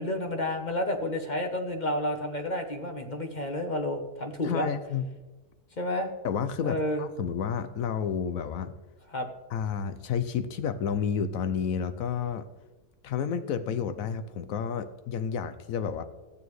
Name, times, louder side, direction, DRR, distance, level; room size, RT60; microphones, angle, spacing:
voice 1, 0.0-4.7 5.8-6.1 6.6-7.0 9.1-9.3, left 1 dB, 35° left, 5 dB, 0.8 m, -30 dB
voice 2, 4.4-5.1 6.2-8.7 9.5-12.5 13.0-16.0, left 7 dB, 70° left, 11 dB, 0.9 m, -30 dB
13.5 x 9.1 x 3.1 m, 1.2 s
omnidirectional pair, 1.7 m